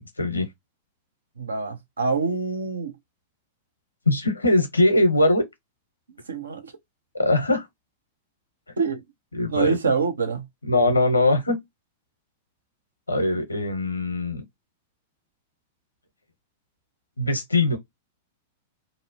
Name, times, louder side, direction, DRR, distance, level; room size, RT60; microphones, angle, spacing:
voice 1, 1.4-2.9 6.3-6.7 8.8-9.0 9.5-10.4, right 5 dB, 75° right, 0.5 m, -26 dB
voice 2, 4.1-5.4 7.1-7.7 9.3-9.8 10.6-11.6 13.1-14.4 17.2-17.8, left 2 dB, 85° left, 0.7 m, -21 dB
2.6 x 2.0 x 2.6 m
figure-of-eight pair, 95°, 0 cm